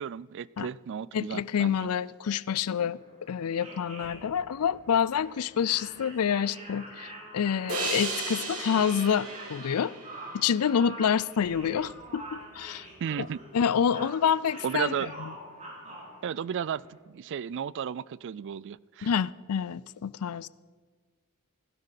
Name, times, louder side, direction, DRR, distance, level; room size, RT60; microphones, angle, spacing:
voice 1, 0.0-1.9 13.0-13.4 14.6-15.1 16.2-16.9 17.1-19.1, right 8 dB, 55° right, 0.3 m, -33 dB
voice 2, 1.1-3.0 3.3-9.9 10.3-12.9 13.2-13.3 13.5-15.3 19.0-20.5, left 7 dB, 75° left, 0.4 m, -27 dB
sound 1, 2.9-17.0, right 1 dB, 30° right, 3.5 m, -46 dB
sound 2, 7.7-11.0, right 3 dB, 70° right, 2.9 m, -35 dB
16.0 x 12.5 x 5.8 m
head